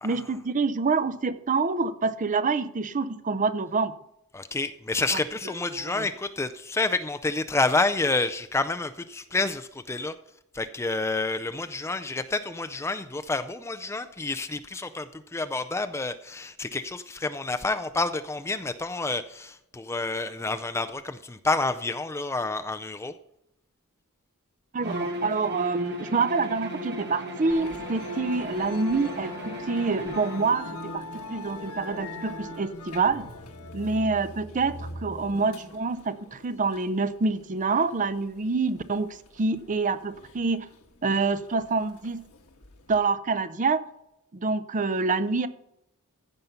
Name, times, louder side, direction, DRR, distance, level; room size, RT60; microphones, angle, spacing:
voice 1, 0.0-3.9 5.1-5.2 5.7-6.1 24.7-31.0 31.3-33.3 33.7-39.1 39.4-40.7 41.0-42.3 42.9-43.8 44.3-45.5, right 4 dB, 35° right, 13 dB, 0.6 m, -26 dB
voice 2, 4.3-10.1 10.5-23.1, left 3 dB, 10° left, 10 dB, 0.4 m, -29 dB
Bowed string instrument, 24.8-30.6, right 1 dB, 50° right, 1.4 m, -36 dB
Musical instrument, 27.5-43.0, left 2 dB, 75° left, 1.5 m, -42 dB
15.0 x 5.3 x 5.7 m, 0.81 s
head